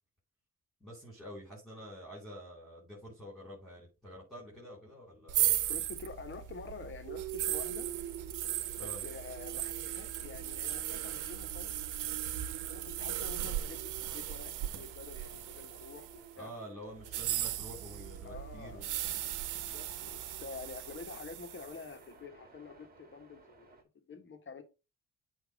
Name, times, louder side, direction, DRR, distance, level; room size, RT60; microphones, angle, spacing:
voice 1, 0.8-5.5 8.8-9.0 16.4-19.1, equal, ahead, 4.1 m, -48 dB
sound 1, 5.3-16.3 17.0-21.8, right 12 dB, 85° right, 0.9 m, -37 dB
voice 2, 5.6-7.9 8.8-11.7 12.5-16.5 18.2-18.8 19.5-23.7 24.1-24.6, left 4 dB, 40° left, 1.5 m, -48 dB
sound 2, 7.1-21.3, right 11 dB, 55° right, 0.7 m, -49 dB
sound 3, 7.8-23.8, right 3 dB, 30° right, 2.2 m, -61 dB
8.1 x 3.0 x 5.1 m
cardioid pair, 90°, 30 cm